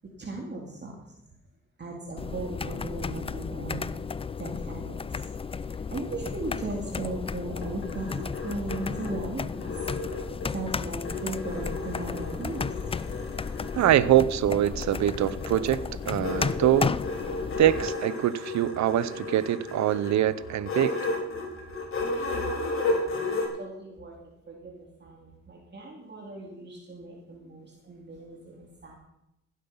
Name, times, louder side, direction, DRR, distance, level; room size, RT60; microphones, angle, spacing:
voice 1, 0.2-1.0 1.8-3.8 4.4-5.1 5.7-9.5 10.5-12.6 23.6-24.2 24.5-29.0, right 2 dB, 35° right, -1 dB, 2.5 m, -37 dB
sound 1, 2.2-17.9, left 5 dB, 20° left, 0.4 m, -34 dB
sound 2, 7.4-10.7 11.0-14.0 14.9-23.5, left 2 dB, 45° left, 4.1 m, -34 dB
voice 2, 13.7-16.9 17.6-21.0, right 12 dB, 65° right, 17 dB, 0.8 m, -24 dB
15.5 x 8.3 x 5.6 m, 0.87 s
cardioid pair, 90°, 30 cm